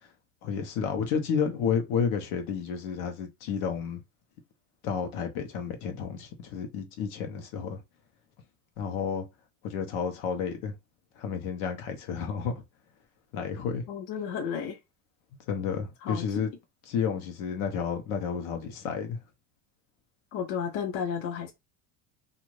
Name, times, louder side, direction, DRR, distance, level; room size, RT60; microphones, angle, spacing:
voice 1, 0.4-4.0 4.8-7.8 8.8-9.2 9.6-10.7 11.2-12.6 13.3-13.8 15.5-16.5 16.9-19.2, left 6 dB, 80° left, 0.9 m, -31 dB
voice 2, 13.9-14.8 16.0-16.2 20.3-21.5, left 7 dB, 50° left, 0.6 m, -32 dB
2.5 x 2.5 x 3.1 m
cardioid pair, 160°, 44 cm